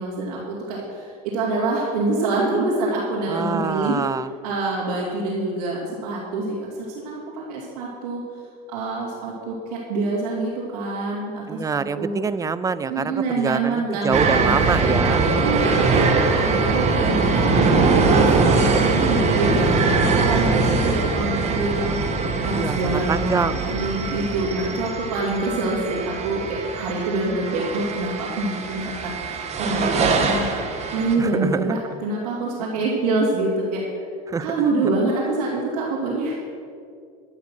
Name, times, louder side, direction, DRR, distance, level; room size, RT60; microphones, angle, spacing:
voice 1, 0.0-4.0 4.4-6.6 7.0-8.2 8.7-12.1 12.9-14.9 15.4-17.6 18.0-23.4 23.6-34.0 34.4-36.4, right 2 dB, 80° right, -5 dB, 3.1 m, -26 dB
voice 2, 3.3-4.3 11.5-15.2 22.5-23.7 31.2-31.8 34.3-34.5, right 5 dB, 15° right, 16 dB, 0.3 m, -25 dB
sound 1, 14.1-31.1, right 4 dB, 35° right, 1.6 m, -22 dB
12.0 x 9.6 x 6.4 m, 2.3 s
supercardioid pair, 125°, 20 cm